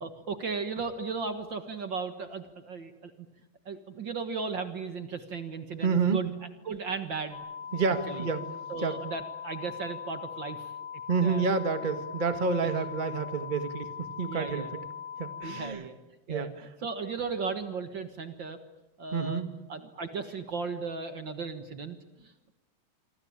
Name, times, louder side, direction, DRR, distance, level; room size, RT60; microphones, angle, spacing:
voice 1, 0.0-3.3 3.7-6.3 6.6-7.4 7.9-8.3 8.7-10.7 11.2-11.5 12.6-12.7 14.3-14.7 15.4-16.0 16.3-16.5 16.8-18.6 19.0-19.4 19.7-22.5, right 4 dB, 45° right, 9 dB, 1.9 m, -36 dB
voice 2, 5.8-6.2 7.7-8.5 8.8-9.0 11.1-14.8 15.2-15.8 16.3-16.5 19.1-19.6, right 5 dB, 20° right, 9 dB, 1.3 m, -29 dB
sound 1, 7.3-15.6, left 7 dB, 85° right, 7.4 m, -41 dB
26.5 x 26.0 x 8.8 m, 1.0 s
omnidirectional pair, 3.4 m